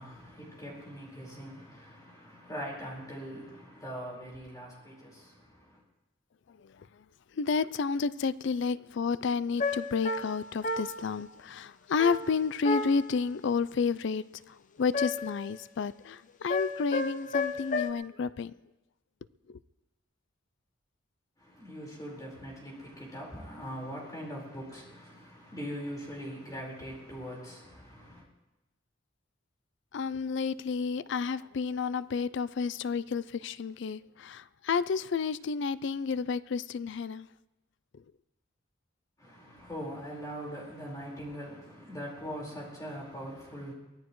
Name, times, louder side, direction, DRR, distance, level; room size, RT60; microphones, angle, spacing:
voice 1, 0.0-5.1 21.6-28.2 39.2-43.7, equal, 20° left, 4.5 m, -41 dB
voice 2, 7.3-18.5 19.5-19.6 29.9-37.3, left 5 dB, 60° left, 0.4 m, -31 dB
sound 1, 9.6-11.2 12.0-13.2 14.9-15.5 16.5-17.9, left 3 dB, 40° left, 0.8 m, -32 dB
23.5 x 17.0 x 3.1 m
head